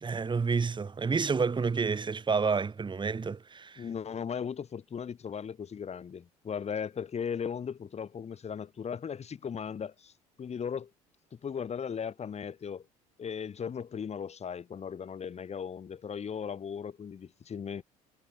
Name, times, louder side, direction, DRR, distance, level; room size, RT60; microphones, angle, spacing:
voice 1, 0.0-3.8, right 5 dB, 25° right, 2.6 m, -29 dB
voice 2, 3.8-10.1 10.4-10.9 11.3-12.9 13.2-17.8, left 7 dB, 35° left, 3.6 m, -37 dB
figure-of-eight pair, 60°, 20 cm